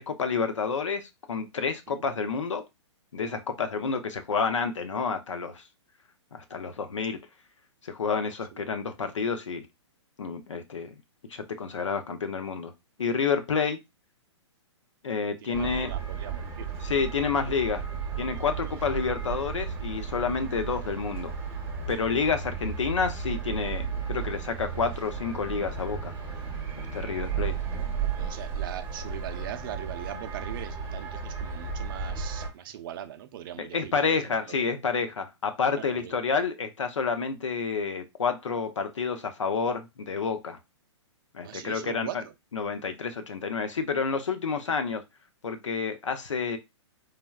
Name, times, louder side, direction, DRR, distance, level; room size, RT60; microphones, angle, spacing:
voice 1, 0.0-2.6 3.1-5.6 6.3-7.2 7.8-9.6 10.2-10.9 11.3-12.7 13.0-13.8 15.0-15.9 16.8-17.8 18.2-21.3 21.9-26.1 26.8-27.5 33.6-40.6 41.3-42.2 42.5-45.0 45.4-46.6, left 5 dB, 85° left, 0.6 m, -29 dB
voice 2, 15.4-16.7 28.1-34.6 35.8-36.1 41.4-42.3, right 11 dB, 45° right, 0.4 m, -41 dB
sound 1, 15.5-32.5, right 6 dB, 15° right, 0.8 m, -34 dB
3.3 x 2.2 x 2.3 m
hypercardioid pair, 130°, 15 cm